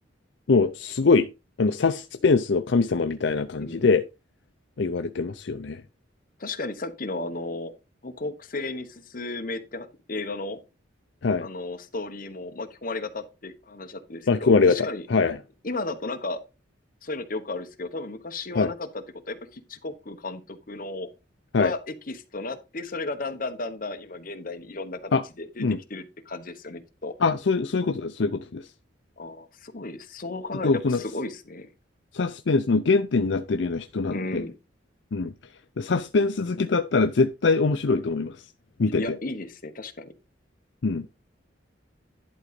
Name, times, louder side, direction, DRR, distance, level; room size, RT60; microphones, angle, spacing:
voice 1, 0.5-1.3 1.6-4.0 4.8-5.8 11.2-11.5 14.3-15.4 18.6-18.7 21.5-21.7 25.1-25.2 25.6-25.8 27.2-28.6 30.6-31.0 32.1-34.4 35.1-35.3 35.8-38.3 38.8-39.0 40.8-41.0, left 4 dB, 70° left, 0.5 m, -23 dB
voice 2, 3.6-3.9 6.4-7.7 8.0-10.6 11.4-15.0 15.6-16.4 17.0-21.1 21.6-25.6 25.9-27.1 29.2-31.7 34.1-34.5 39.0-40.1, left 2 dB, 45° left, 1.1 m, -34 dB
11.0 x 3.9 x 5.2 m
head